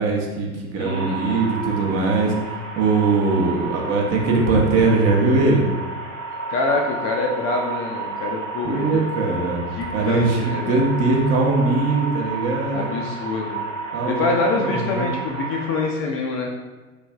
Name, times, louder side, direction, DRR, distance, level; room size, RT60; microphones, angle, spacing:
voice 1, 0.0-2.3 2.7-5.7 8.6-9.6 9.9-12.9 13.9-14.3 14.6-15.3, right 3 dB, 40° right, 0 dB, 0.7 m, -21 dB
voice 2, 0.8-1.4 6.5-9.0 9.7-10.8 12.7-13.6 14.1-15.2 15.5-16.5, left 3 dB, 35° left, 0 dB, 0.4 m, -25 dB
sound 1, 0.9-15.9, right 4 dB, 70° right, 1.2 m, -31 dB
3.3 x 3.2 x 2.2 m, 1.2 s
hypercardioid pair, 95°, 40 cm